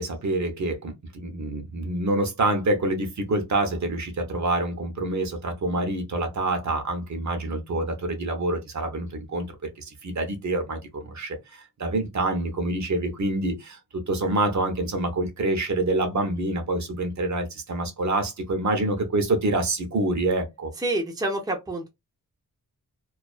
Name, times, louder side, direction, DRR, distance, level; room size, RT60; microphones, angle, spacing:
voice 1, 0.0-9.5 9.8-13.8 14.1-20.7, right 2 dB, 55° right, 0.7 m, -26 dB
voice 2, 20.8-21.9, right 1 dB, 10° right, 0.5 m, -27 dB
2.3 x 2.2 x 2.3 m
wide cardioid pair, 165°, 34 cm